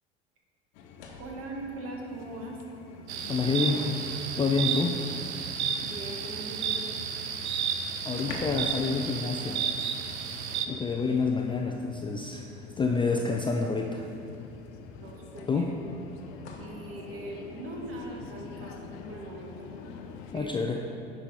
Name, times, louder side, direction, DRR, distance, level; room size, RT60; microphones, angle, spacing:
sound 1, 0.7-1.5 2.8-2.9 3.4-5.0 7.1-7.2 7.4-7.5 8.1-8.8 9.1-9.3 10.9-11.6 12.8-12.9 14.4-14.5 15.4-16.8 20.2-20.5, left 3 dB, 80° left, 1.0 m, -45 dB
sound 2, 0.7-20.4, left 6 dB, 55° left, 0.8 m, -48 dB
voice 1, 1.2-2.6 5.8-6.9 10.6-11.1 15.0-15.6 16.6-19.7 20.3-20.5, right 1 dB, 40° right, 0 dB, 1.6 m, -40 dB
sound 3, 3.1-10.7, right 7 dB, 80° right, 0.6 m, -32 dB
voice 2, 3.3-3.9 4.3-5.0 8.0-9.6 10.7-12.5 12.8-14.0 15.5-15.7 20.3-20.8, left 4 dB, 15° left, 1 dB, 0.4 m, -28 dB
9.9 x 5.0 x 4.1 m, 2.7 s
hypercardioid pair, 75°, 33 cm